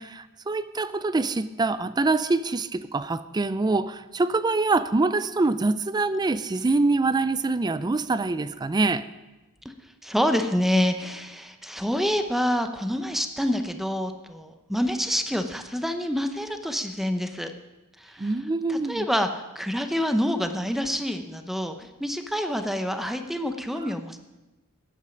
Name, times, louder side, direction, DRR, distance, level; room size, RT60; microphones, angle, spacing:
voice 1, 0.0-9.1 18.2-19.1 23.8-23.9, right 3 dB, 20° right, 14 dB, 0.4 m, -25 dB
voice 2, 10.0-17.5 18.0-18.3 18.7-19.3 19.5-24.2, equal, ahead, 7 dB, 0.8 m, -27 dB
15.5 x 11.0 x 5.2 m, 1.1 s
head